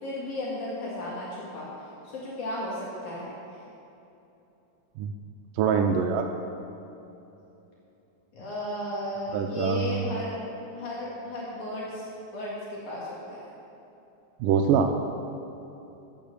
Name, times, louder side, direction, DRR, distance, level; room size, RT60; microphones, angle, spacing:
voice 1, 0.0-3.6 8.3-10.4 10.7-13.5, left 1 dB, 65° left, -6 dB, 3.3 m, -35 dB
voice 2, 5.6-6.2 9.3-10.1 14.4-14.9, right 7 dB, 85° right, 4 dB, 2.3 m, -24 dB
13.5 x 9.0 x 6.6 m, 2.9 s
omnidirectional pair, 3.8 m